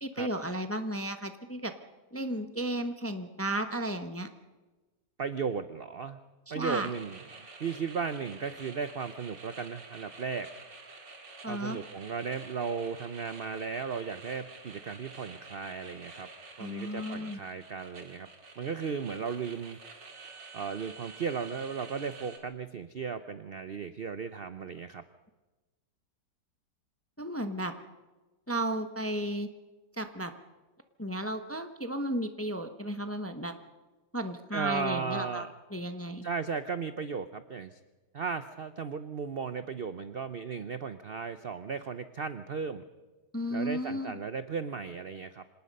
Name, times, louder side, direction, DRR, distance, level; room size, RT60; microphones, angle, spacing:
voice 1, 0.0-1.7 2.1-4.3 6.5-6.9 11.4-11.8 16.6-17.4 27.2-27.7 28.5-29.5 30.0-30.3 31.0-33.5 34.1-35.4 35.7-36.3 43.3-44.2, right 1 dB, 10° left, 8 dB, 0.7 m, -34 dB
voice 2, 5.2-6.2 6.5-7.2 7.6-10.5 11.5-16.3 16.6-18.3 18.6-19.8 20.5-25.0 34.5-35.5 36.2-37.8 38.1-42.8 43.5-45.4, right 5 dB, 55° right, 11 dB, 0.6 m, -35 dB
sound 1, 6.7-22.4, right 3 dB, 90° right, 3.0 m, -49 dB
26.0 x 19.0 x 5.4 m, 1.2 s
omnidirectional pair, 1.9 m